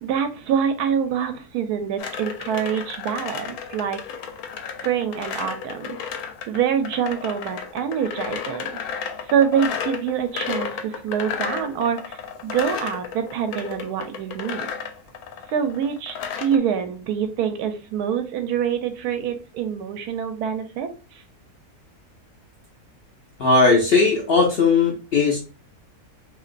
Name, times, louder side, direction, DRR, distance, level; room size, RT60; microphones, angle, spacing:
voice 1, 0.0-4.0 4.8-6.0 6.5-8.7 9.3-14.7 15.5-20.9, right 8 dB, 85° right, 8 dB, 1.1 m, -25 dB
sound 1, 2.0-16.6, left 7 dB, 75° left, 1.1 m, -33 dB
voice 2, 23.4-25.4, left 4 dB, 60° left, 0 dB, 0.6 m, -18 dB
2.9 x 2.8 x 2.5 m, 0.35 s
omnidirectional pair, 1.6 m